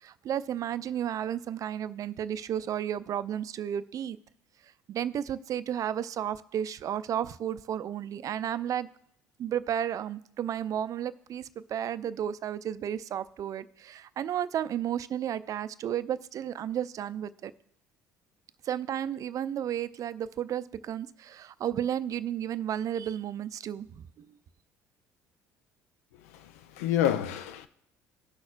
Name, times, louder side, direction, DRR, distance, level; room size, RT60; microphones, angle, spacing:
voice 1, 0.0-4.2 4.9-8.9 9.4-17.5 18.6-24.3, right 10 dB, 50° right, 0.4 m, -33 dB
voice 2, 26.1-27.7, left 11 dB, 80° left, 0.5 m, -29 dB
16.5 x 6.0 x 2.5 m
hypercardioid pair, 65°, 8 cm